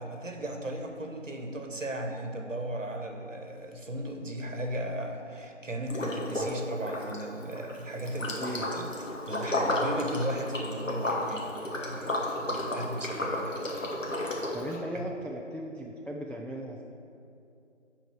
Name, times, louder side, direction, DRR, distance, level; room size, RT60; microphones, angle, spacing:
voice 1, 0.0-8.9 9.2-13.6 14.9-15.1, right 1 dB, 75° right, 3 dB, 1.0 m, -36 dB
Liquid, 5.9-6.6 6.8-14.8, left 1 dB, 80° left, 1.4 m, -32 dB
voice 2, 8.4-8.7 14.5-16.8, equal, 5° left, -1 dB, 0.3 m, -37 dB
9.0 x 3.9 x 4.7 m, 2.6 s
figure-of-eight pair, 175°, 38 cm